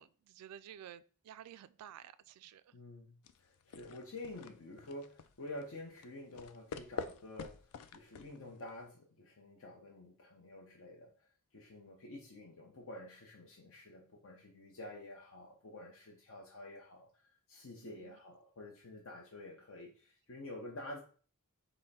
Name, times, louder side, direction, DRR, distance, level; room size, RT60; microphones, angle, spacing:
voice 1, 0.0-2.7 17.8-18.2, right 10 dB, 85° right, 0.3 m, -53 dB
voice 2, 2.7-21.0, left 1 dB, 65° left, 0.8 m, -49 dB
sound 1, 3.2-8.9, left 5 dB, 90° left, 0.4 m, -48 dB
5.4 x 2.1 x 4.1 m
head